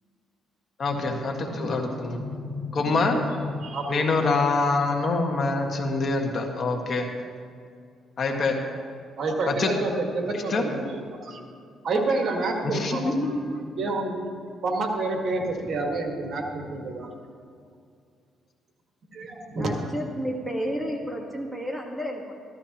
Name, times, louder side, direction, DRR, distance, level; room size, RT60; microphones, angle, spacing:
voice 1, 0.8-2.2 2.7-3.2 3.9-7.1 8.2-8.6 9.5-9.7 10.5-10.6 12.6-13.1, left 3 dB, 50° left, 2 dB, 1.7 m, -25 dB
voice 2, 1.4-4.3 9.2-11.4 11.8-14.3 14.6-17.1 19.1-19.7, right 2 dB, 55° right, 1 dB, 1.7 m, -29 dB
voice 3, 19.6-22.3, equal, 5° right, 1 dB, 1.5 m, -31 dB
14.5 x 13.5 x 3.0 m, 2.3 s
cardioid pair, 90°, 0 cm